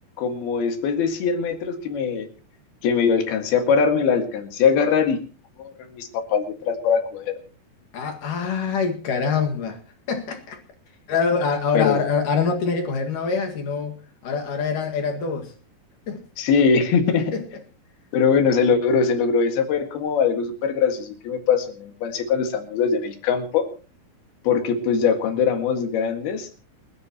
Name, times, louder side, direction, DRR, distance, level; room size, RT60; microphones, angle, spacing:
voice 1, 0.2-2.3 2.8-5.2 5.6-7.4 11.7-12.0 16.4-17.3 18.1-23.7 24.5-26.5, left 6 dB, 80° left, 3.8 m, -21 dB
voice 2, 7.9-9.8 10.1-10.6 11.1-15.5 16.1-16.2 17.3-17.4, left 5 dB, 60° left, 3.3 m, -25 dB
28.5 x 11.0 x 3.0 m
omnidirectional pair, 4.4 m